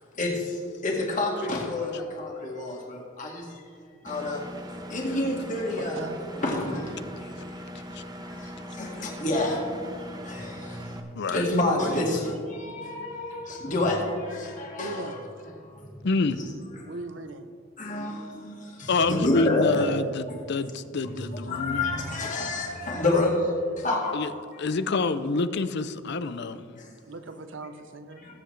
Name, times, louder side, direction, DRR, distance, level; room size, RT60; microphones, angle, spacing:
voice 1, 0.1-3.6 4.0-6.0 6.3-7.0 8.3-15.2 15.6-16.0 16.4-16.5 16.7-16.9 17.8-20.5 21.0-24.2 24.5-24.7 26.8-26.9 28.2-28.4, left 2 dB, 40° left, -1 dB, 2.0 m, -29 dB
Engine, 4.1-11.0, equal, 20° right, 0.8 m, -40 dB
voice 2, 5.8-6.2 11.5-12.5 14.8-15.2 16.8-17.5 23.1-23.2 27.0-28.2, right 1 dB, 65° right, 9 dB, 0.8 m, -37 dB
voice 3, 16.0-16.4 18.9-21.8 24.1-24.3 24.6-26.6, left 3 dB, 55° left, 13 dB, 0.5 m, -27 dB
20.0 x 8.1 x 3.3 m, 2.2 s
head